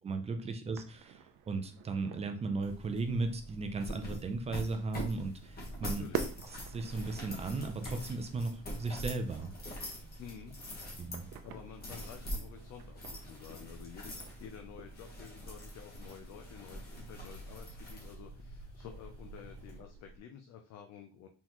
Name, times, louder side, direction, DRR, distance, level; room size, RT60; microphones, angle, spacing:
voice 1, 0.0-6.1 6.7-9.5 11.0-11.3, right 3 dB, 20° right, 6 dB, 0.5 m, -36 dB
sound 1, 0.6-20.2, right 8 dB, 85° right, 0.6 m, -49 dB
sound 2, 2.6-19.8, equal, 30° left, 1.3 m, -44 dB
voice 2, 5.6-6.3 10.2-10.6 11.4-21.3, left 8 dB, 60° left, 5 dB, 0.5 m, -50 dB
4.0 x 3.9 x 3.0 m, 0.38 s
cardioid pair, 165°, 30 cm